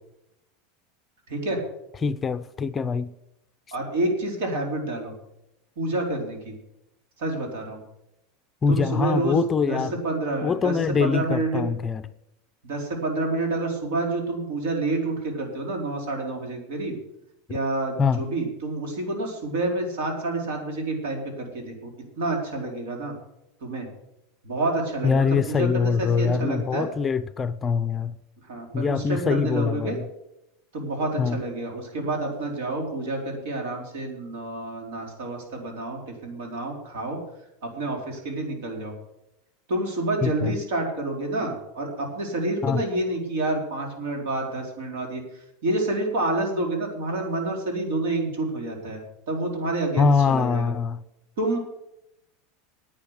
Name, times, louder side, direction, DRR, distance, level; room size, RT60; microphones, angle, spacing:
voice 1, 1.3-1.6 3.7-5.1 5.8-6.5 7.2-7.8 8.7-9.4 9.7-9.8 10.0-10.7 11.0-11.6 12.6-16.9 17.5-21.9 22.2-23.1 23.6-23.9 24.4-26.9 28.5-30.0 30.7-37.2 37.6-38.9 39.7-45.2 45.6-50.7 51.4-51.6, right 2 dB, 80° right, 4.4 m, -28 dB
voice 2, 2.0-3.1 8.6-9.9 10.4-12.0 18.0-18.2 25.0-28.1 28.7-30.1 31.2-31.4 40.2-40.6 42.6-42.8 50.0-51.0, left 5 dB, 20° left, 0.5 m, -23 dB
10.0 x 8.8 x 8.1 m
supercardioid pair, 150°, 0 cm